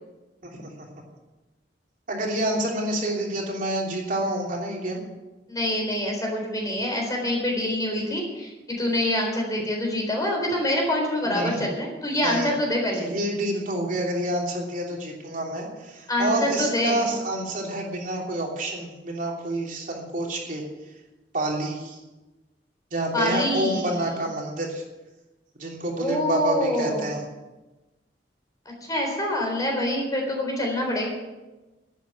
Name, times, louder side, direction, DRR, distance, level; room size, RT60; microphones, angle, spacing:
voice 1, 0.5-0.9 2.1-5.0 11.3-11.7 12.2-12.5 12.9-20.6 21.3-22.0 22.9-24.8 25.6-27.3, right 1 dB, 50° right, -1 dB, 3.1 m, -28 dB
voice 2, 5.5-13.1 16.1-17.0 23.1-23.9 26.0-27.1 28.9-31.1, left 1 dB, 20° left, 0 dB, 3.9 m, -26 dB
11.5 x 9.1 x 9.0 m, 1.1 s
head